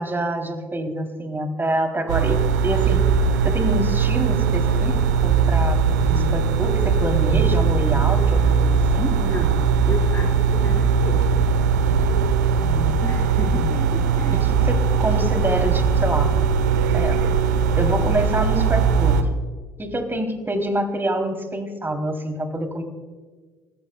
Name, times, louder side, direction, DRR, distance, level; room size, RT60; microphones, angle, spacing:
voice 1, 0.0-2.4 2.6-3.0 3.4-5.0 5.2-9.1 12.6-13.7 14.4-16.3 16.9-17.2 17.8-19.2 19.8-22.8, right 1 dB, 25° right, 5 dB, 3.1 m, -26 dB
sound 1, 2.1-19.2, right 6 dB, 90° right, 0.9 m, -20 dB
voice 2, 9.2-11.4 13.0-14.5, left 2 dB, 25° left, -2 dB, 4.6 m, -33 dB
29.5 x 14.5 x 2.3 m, 1.4 s
hypercardioid pair, 55°, 9 cm